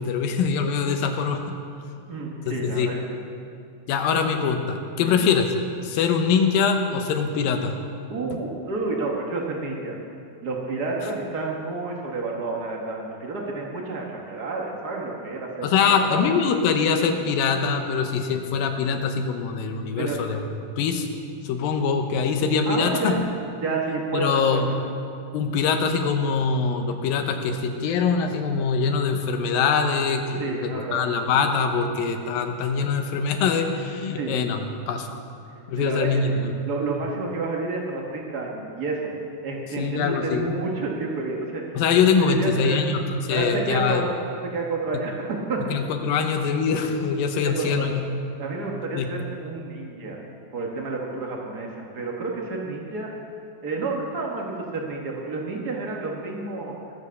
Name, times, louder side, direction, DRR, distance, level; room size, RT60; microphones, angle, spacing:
voice 1, 0.0-1.4 2.5-2.9 3.9-5.5 5.8-7.7 15.6-20.4 20.8-21.1 21.4-23.2 24.1-24.7 25.3-34.6 34.9-35.1 35.7-36.6 39.8-40.5 41.8-44.1 45.7-48.1 49.0-49.1, left 5 dB, 80° left, 5 dB, 2.7 m, -23 dB
voice 2, 2.1-3.2 5.0-5.2 8.1-10.0 10.4-16.2 20.0-20.2 22.7-23.2 23.6-24.6 30.4-31.2 34.1-34.4 35.8-39.1 39.4-41.6 42.2-42.8 43.3-44.1 44.4-45.6 46.1-46.2 47.4-48.0 48.4-50.2 50.5-53.1 53.6-56.8, right 3 dB, 85° right, -1 dB, 0.8 m, -30 dB
19.5 x 7.7 x 6.9 m, 2.5 s
omnidirectional pair, 4.2 m